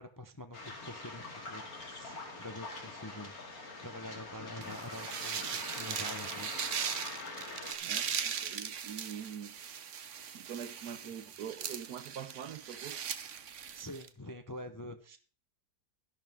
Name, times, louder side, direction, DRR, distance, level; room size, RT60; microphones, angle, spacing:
voice 1, 0.0-6.7 11.0-11.1 13.7-15.2, left 1 dB, 20° left, 0.5 m, -46 dB
Waves surf, 0.5-7.7, left 2 dB, 60° left, 2.9 m, -44 dB
sound 1, 4.6-14.1, right 8 dB, 50° right, 1.1 m, -39 dB
voice 2, 7.8-9.6 10.3-13.1, right 8 dB, 70° right, 1.3 m, -44 dB
13.5 x 11.5 x 3.6 m
omnidirectional pair, 1.8 m